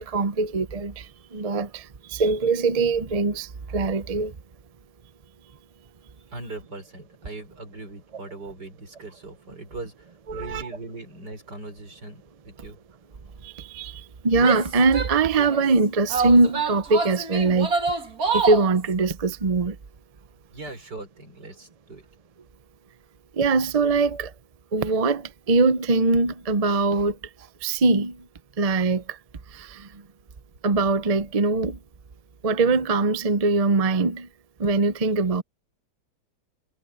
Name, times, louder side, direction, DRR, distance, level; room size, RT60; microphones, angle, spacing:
voice 1, 0.0-4.3 10.3-10.7 13.4-17.7 18.3-19.8 23.3-24.3 24.7-27.2 27.6-28.3 28.6-29.2 29.5-30.0 30.6-31.8 32.4-34.3 34.6-35.4, right 3 dB, 35° right, 0.6 m, -22 dB
voice 2, 6.3-9.9 10.3-12.8 20.5-22.0, right 2 dB, 80° right, 6.0 m, -40 dB
Female speech woman speaking / Yell, 14.4-15.6 16.1-18.7, right 5 dB, 60° right, 2.8 m, -27 dB
omnidirectional pair, 1.8 m